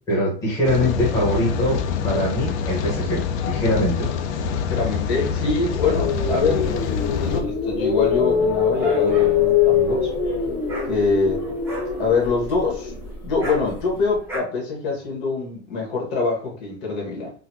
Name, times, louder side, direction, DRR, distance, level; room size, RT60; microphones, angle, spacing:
voice 1, 0.1-1.8 2.0-4.1, left 1 dB, 10° left, -7 dB, 1.1 m, -22 dB
Rain, 0.6-7.4, left 7 dB, 80° left, 0.6 m, -26 dB
voice 2, 4.7-6.7 7.2-10.1 10.8-11.5 12.0-12.9 13.2-17.3, left 4 dB, 65° left, -1 dB, 1.7 m, -24 dB
sound 1, 5.7-13.8, left 7 dB, 30° left, 1.2 m, -23 dB
Dog, 8.3-14.4, right 2 dB, 5° right, 0.6 m, -37 dB
3.9 x 2.3 x 2.8 m, 0.42 s
supercardioid pair, 165°, 34 cm